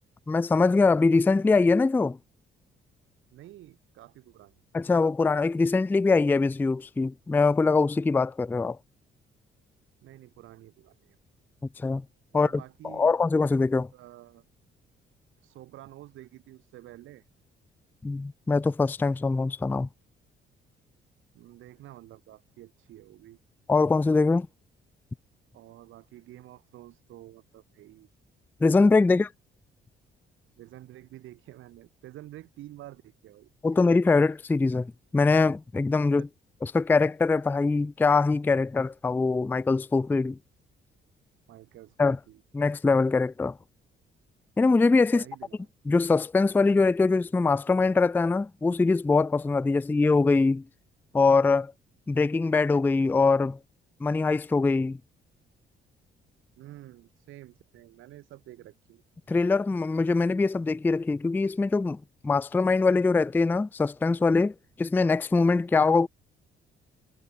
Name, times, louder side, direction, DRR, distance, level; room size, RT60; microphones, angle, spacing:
voice 1, 0.3-2.2 4.7-8.8 11.8-12.0 12.3-12.5 12.8-13.9 18.0-19.9 23.7-24.5 28.6-29.3 33.6-36.3 36.6-40.4 42.0-42.2 42.5-43.6 44.6-45.2 45.9-50.6 51.1-51.7 52.1-53.6 54.0-55.0 59.3-66.1, left 3 dB, 10° left, 0.3 m, -23 dB
voice 2, 3.3-4.6 10.0-11.2 12.3-13.1 13.9-14.4 15.4-17.3 21.3-23.4 25.5-28.1 29.1-29.2 30.6-33.5 36.2-36.3 41.5-42.4 45.1-45.7 56.6-59.0, right 15 dB, 80° right, 1.1 m, -49 dB
cardioid pair, 90°, 20 cm